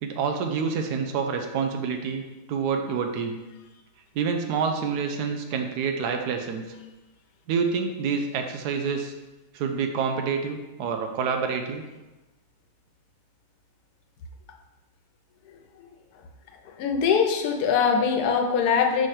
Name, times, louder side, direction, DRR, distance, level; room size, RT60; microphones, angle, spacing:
voice 1, 0.0-3.4 4.1-6.6 7.5-9.1 9.5-11.8, right 6 dB, 90° right, 5 dB, 1.2 m, -27 dB
voice 2, 16.8-19.1, left 6 dB, 75° left, 3 dB, 1.2 m, -22 dB
5.3 x 3.6 x 5.7 m, 1.1 s
omnidirectional pair, 1.7 m